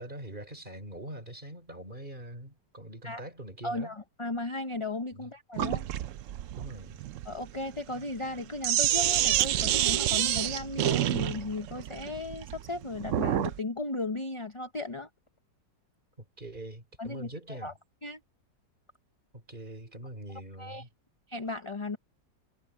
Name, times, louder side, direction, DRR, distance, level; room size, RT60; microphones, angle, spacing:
voice 1, 0.0-3.9 5.1-5.3 6.6-7.0 16.2-17.7 19.3-20.9, right 1 dB, 25° right, 4.5 m, -43 dB
voice 2, 3.6-5.9 7.2-15.1 17.0-17.7 18.0-18.2 20.6-20.8 21.3-22.0, left 2 dB, 30° left, 0.6 m, -35 dB
Sink (filling or washing), 5.6-13.6, right 12 dB, 85° right, 0.6 m, -28 dB
omnidirectional pair, 1.9 m